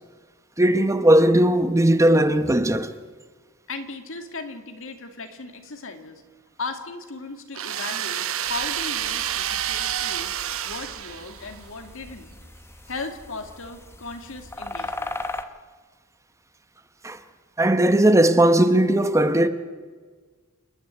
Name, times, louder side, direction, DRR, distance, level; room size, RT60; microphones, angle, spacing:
voice 1, 0.6-2.9 17.0-17.2 17.6-19.5, right 1 dB, 15° right, 0.9 m, -18 dB
voice 2, 3.7-6.2 6.6-10.4 10.6-12.3 12.9-15.2, left 3 dB, 65° left, 2.3 m, -37 dB
sound 1, 7.5-11.7, right 10 dB, 70° right, 1.0 m, -29 dB
sound 2, 8.4-15.4, left 2 dB, 10° left, 1.0 m, -39 dB
28.5 x 10.0 x 9.6 m
head